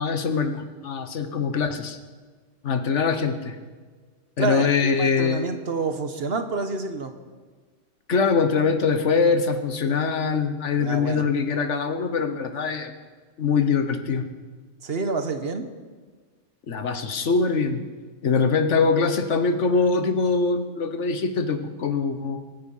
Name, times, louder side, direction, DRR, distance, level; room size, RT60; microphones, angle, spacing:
voice 1, 0.0-2.0 2.6-3.6 4.4-5.5 8.1-12.9 13.4-14.2 16.7-17.8 18.2-22.4, left 5 dB, 75° left, 9 dB, 1.4 m, -23 dB
voice 2, 4.4-7.1 10.8-11.3 14.8-15.7, right 4 dB, 55° right, 8 dB, 1.4 m, -28 dB
23.5 x 9.6 x 5.6 m, 1.5 s
omnidirectional pair, 1.2 m